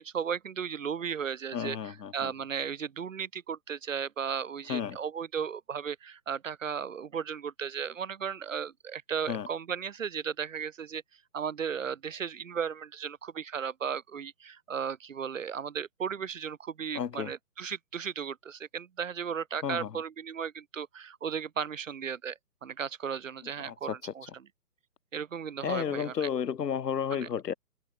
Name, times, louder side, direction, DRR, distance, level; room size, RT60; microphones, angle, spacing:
voice 1, 0.0-11.0 11.3-24.3 25.1-26.3 27.1-27.3, right 7 dB, 55° right, 0.7 m, -35 dB
voice 2, 1.5-2.3 4.7-5.0 9.3-9.5 16.9-17.3 19.6-20.0 23.6-24.1 25.6-27.5, left 8 dB, 85° left, 1.0 m, -32 dB
hypercardioid pair, 165°, 47 cm